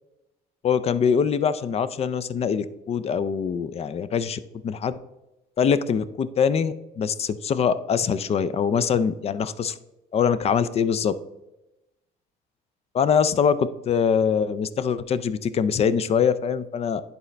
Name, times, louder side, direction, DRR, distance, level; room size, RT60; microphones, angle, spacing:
voice 1, 0.6-5.0 5.6-9.8 10.1-11.1 12.9-17.0, left 7 dB, 40° left, 14 dB, 0.4 m, -23 dB
10.0 x 4.1 x 3.2 m, 0.97 s
cardioid pair, 110°, 17 cm